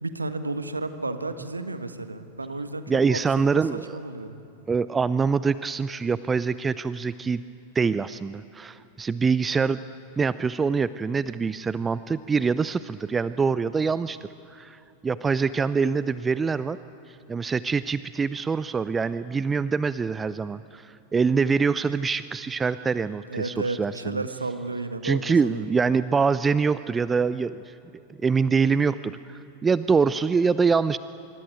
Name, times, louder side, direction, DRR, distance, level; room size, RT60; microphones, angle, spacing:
voice 1, 0.0-3.2 3.5-3.6 3.9-4.4 23.3-25.6, right 2 dB, 80° right, 9 dB, 1.5 m, -32 dB
voice 2, 2.9-4.0 4.7-7.4 7.7-9.8 10.2-14.2 14.5-16.8 17.3-24.2 25.0-27.7 28.2-31.0, right 5 dB, 15° right, 16 dB, 0.5 m, -24 dB
25.5 x 24.0 x 9.2 m, 2.8 s
figure-of-eight pair, 90°, 0 cm